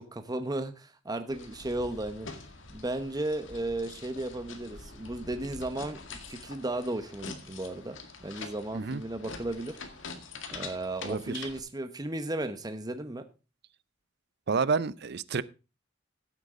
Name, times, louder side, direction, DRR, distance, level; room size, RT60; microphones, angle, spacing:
voice 1, 0.0-2.3 2.7-9.8 10.5-13.2, right 1 dB, 20° right, 0.9 m, -35 dB
sound 1, 1.3-11.6, left 4 dB, 70° left, 2.0 m, -45 dB
voice 2, 11.0-11.5 14.5-15.4, right 4 dB, 55° right, 0.6 m, -29 dB
15.5 x 8.2 x 3.7 m
head